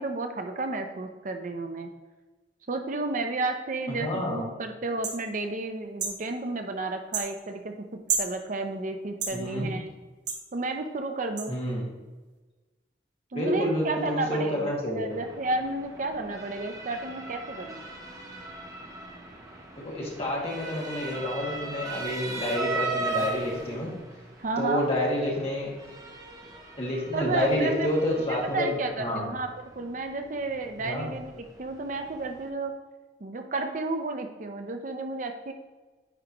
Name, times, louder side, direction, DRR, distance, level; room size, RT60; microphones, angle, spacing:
voice 1, 0.0-1.9 2.7-7.7 8.2-9.9 10.5-11.6 13.3-17.8 24.4-24.9 27.1-27.9 28.3-32.7 33.2-35.5, right 3 dB, 45° right, 6 dB, 0.6 m, -32 dB
voice 2, 4.0-4.4 9.3-9.7 11.5-11.9 13.3-15.1 19.8-23.9 24.6-25.7 26.8-28.7 29.0-29.3 30.8-31.1, left 1 dB, 35° left, -4 dB, 2.0 m, -29 dB
sound 1, 5.0-5.2 6.0-6.2 7.1-7.3 8.1-8.3 9.2-9.4 10.3-10.4 11.4-11.5, right 5 dB, 70° right, 1.2 m, -29 dB
Motor vehicle (road) / Siren, 15.1-32.5, right 3 dB, 20° right, 1.0 m, -39 dB
10.0 x 4.6 x 3.0 m, 1.3 s
head